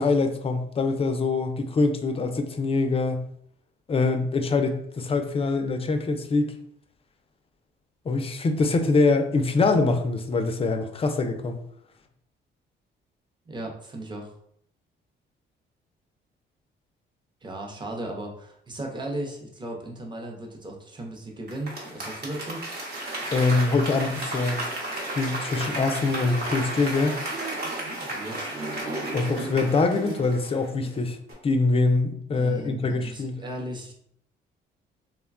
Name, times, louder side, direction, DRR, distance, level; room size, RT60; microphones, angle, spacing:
voice 1, 0.0-3.3 3.9-6.5 8.1-11.6 23.3-24.6 25.0-27.1 29.1-31.2 31.4-33.4, left 3 dB, 30° left, 6 dB, 0.4 m, -24 dB
voice 2, 13.5-14.3 17.4-22.6 28.0-28.5 32.3-34.0, right 1 dB, 25° right, 0 dB, 0.7 m, -36 dB
Applause / Crowd, 21.5-30.9 31.3-31.4, right 1 dB, 55° right, 0.9 m, -33 dB
3.2 x 2.1 x 2.4 m, 0.68 s
cardioid pair, 90°, 20 cm